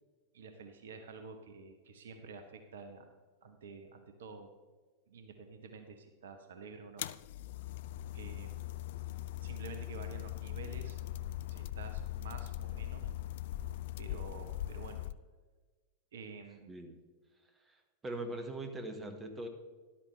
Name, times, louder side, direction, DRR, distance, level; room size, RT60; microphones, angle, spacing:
voice 1, 0.3-3.1 3.4-4.5 5.1-7.0 8.1-8.6 9.4-11.0 11.5-13.1 14.0-15.1 16.1-16.7, right 4 dB, 60° right, 7 dB, 1.0 m, -49 dB
sound 1, 7.0-15.1, left 13 dB, 55° left, 0.3 m, -40 dB
voice 2, 17.7-19.5, right 1 dB, 20° right, 5 dB, 1.5 m, -41 dB
13.0 x 11.5 x 3.3 m, 1.3 s
figure-of-eight pair, 90°, 0 cm